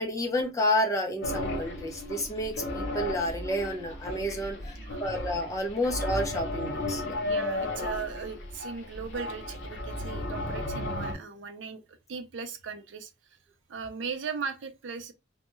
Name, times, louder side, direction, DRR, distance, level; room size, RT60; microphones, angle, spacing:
voice 1, 0.0-7.2, left 1 dB, 15° left, 0.4 m, -30 dB
sound 1, 1.2-11.1, left 1 dB, 70° left, 0.7 m, -34 dB
voice 2, 4.7-5.0 7.3-11.8 12.1-13.1 13.7-15.1, right 6 dB, 80° right, 0.4 m, -38 dB
2.2 x 2.1 x 2.9 m
head